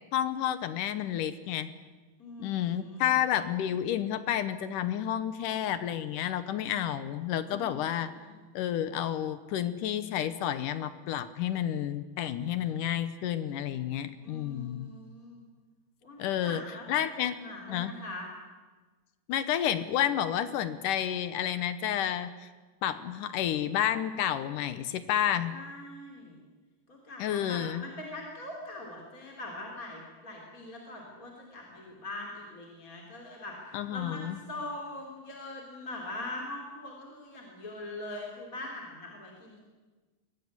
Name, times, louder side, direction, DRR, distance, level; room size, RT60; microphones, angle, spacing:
voice 1, 0.1-1.7 2.4-8.1 8.5-14.9 16.2-16.6 16.9-17.4 17.7-17.9 19.3-22.5 22.8-25.6 27.2-27.8 33.7-34.4, left 10 dB, 70° left, 13 dB, 2.2 m, -30 dB
voice 2, 2.2-3.0 7.4-7.9 8.2-8.3 14.2-15.4 16.0-17.0 17.4-18.3 25.5-26.4 26.9-39.6, left 2 dB, 25° left, 0 dB, 3.3 m, -42 dB
22.5 x 18.0 x 9.7 m, 1.3 s
omnidirectional pair, 4.4 m